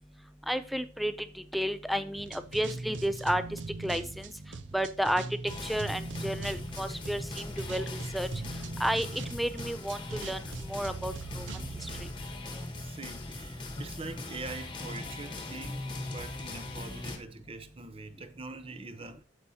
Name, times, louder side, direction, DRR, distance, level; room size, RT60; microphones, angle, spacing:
voice 1, 0.5-1.1 1.5-3.4 3.8-4.2 4.7-5.2 5.6-7.8 8.1-8.3 8.8-9.1 9.3-10.4 10.7-11.5, equal, ahead, 0.4 m, -31 dB
sound 1, 2.1-12.1, right 3 dB, 75° right, 0.7 m, -41 dB
sound 2, 5.5-17.2, left 2 dB, 25° left, 1.1 m, -40 dB
voice 2, 12.8-19.2, right 3 dB, 30° right, 0.7 m, -44 dB
14.0 x 4.9 x 2.8 m
head